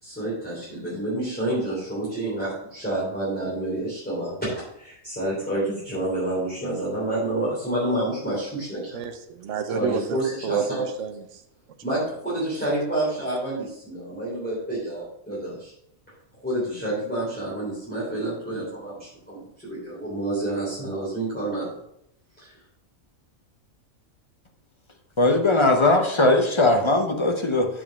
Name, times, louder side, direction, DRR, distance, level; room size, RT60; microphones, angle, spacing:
voice 1, 0.0-4.5 4.8-9.0 9.7-10.8 11.8-15.7 16.4-21.7 22.4-22.5, right 1 dB, 5° left, -9 dB, 3.1 m, -28 dB
voice 2, 8.9-11.4, right 7 dB, 65° right, 7 dB, 1.1 m, -30 dB
voice 3, 25.2-27.7, left 2 dB, 25° left, 4 dB, 0.7 m, -19 dB
7.5 x 5.4 x 5.2 m, 0.75 s
omnidirectional pair, 1.4 m